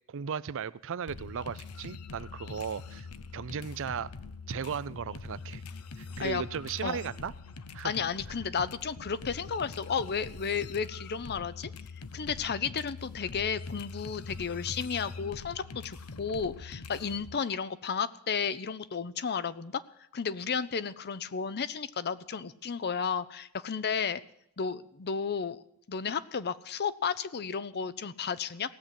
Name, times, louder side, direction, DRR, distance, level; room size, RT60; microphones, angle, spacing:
voice 1, 0.1-3.1 3.3-4.1 4.5-5.6 6.0-7.3 7.7-7.9, right 7 dB, 60° right, 16 dB, 0.5 m, -36 dB
sound 1, 1.1-17.4, left 4 dB, 80° left, 0.8 m, -43 dB
voice 2, 7.8-11.7 12.1-19.8 20.1-24.2 24.6-25.6 25.9-28.8, left 6 dB, 45° left, 15 dB, 0.6 m, -33 dB
17.5 x 7.6 x 9.9 m, 0.76 s
head